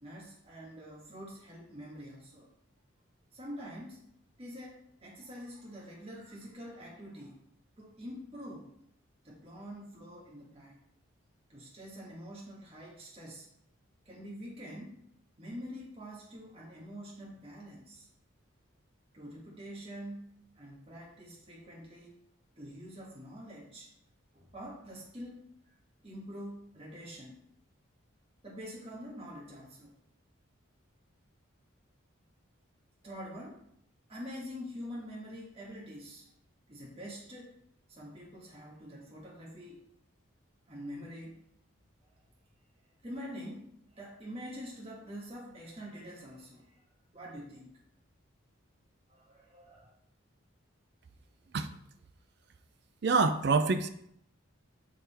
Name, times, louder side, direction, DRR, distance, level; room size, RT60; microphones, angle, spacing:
voice 1, 0.0-2.5 3.3-4.0 4.4-7.4 7.8-8.7 9.2-10.8 11.5-13.5 14.0-15.0 15.4-18.1 19.1-22.2 22.6-23.9 24.3-25.8 26.0-27.4 28.4-29.9 33.0-33.6 34.1-36.3 36.7-37.5 37.9-39.8 40.7-41.4 42.0-42.1 42.8-46.8 47.1-47.8 49.1-49.9, equal, 30° right, -4 dB, 1.4 m, -46 dB
voice 2, 53.0-53.9, right 4 dB, 55° right, 9 dB, 0.4 m, -26 dB
9.2 x 3.6 x 4.3 m, 0.71 s
head